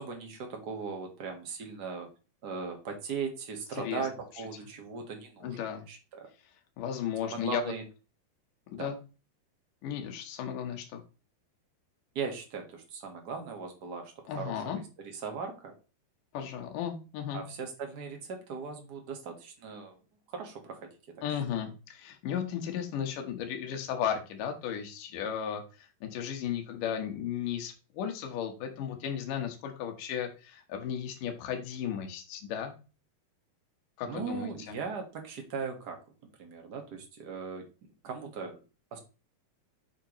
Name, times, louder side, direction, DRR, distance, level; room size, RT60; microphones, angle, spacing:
voice 1, 0.0-2.1 2.4-5.6 5.9-6.3 7.2-7.8 8.8-8.9 12.1-15.7 17.3-19.9 20.3-21.0 21.3-21.4 34.1-36.0 36.4-37.6 38.0-38.6 38.9-39.0, right 5 dB, 60° right, 3 dB, 1.0 m, -38 dB
voice 2, 5.4-5.8 6.8-7.6 8.7-9.0 9.8-11.0 14.3-14.8 16.3-17.4 21.2-25.6 26.0-32.7 34.0-34.7, left 8 dB, 65° left, 3 dB, 2.7 m, -35 dB
7.3 x 6.3 x 3.1 m, 0.32 s
omnidirectional pair, 4.3 m